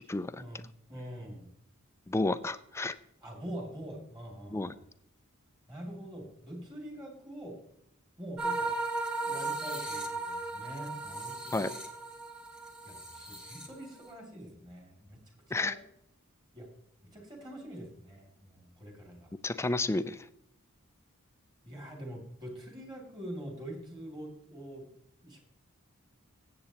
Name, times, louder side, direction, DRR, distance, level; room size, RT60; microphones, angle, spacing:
voice 1, 0.1-0.4 2.1-3.0 4.5-4.7 11.5-11.7 15.5-15.8 19.4-20.2, left 2 dB, 10° left, 14 dB, 0.3 m, -31 dB
voice 2, 0.9-1.5 3.2-4.8 5.7-7.6 8.2-8.7 9.2-11.8 12.8-15.2 15.5-15.8 16.5-16.7 17.1-19.3 21.6-24.9 25.2-25.4, right 1 dB, 20° right, 0 dB, 2.6 m, -44 dB
sound 1, 8.4-14.1, right 3 dB, 5° right, 1.4 m, -36 dB
16.0 x 7.8 x 2.9 m, 0.76 s
head